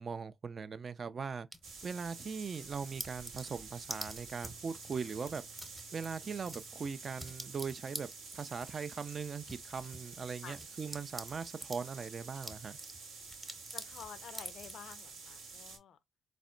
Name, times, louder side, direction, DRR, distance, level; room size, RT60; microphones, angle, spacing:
voice 1, 0.0-1.5 1.8-5.4 5.9-8.1 8.3-12.8, right 5 dB, 50° right, 0.3 m, -40 dB
sound 1, 1.5-2.3 2.7-11.8 12.2-15.0, right 1 dB, 20° right, 0.8 m, -48 dB
sound 2, 1.6-15.8, right 4 dB, 75° right, 0.7 m, -49 dB
voice 2, 13.7-16.0, left 9 dB, 65° left, 0.4 m, -50 dB
4.1 x 2.1 x 2.3 m
hypercardioid pair, 40°, 0 cm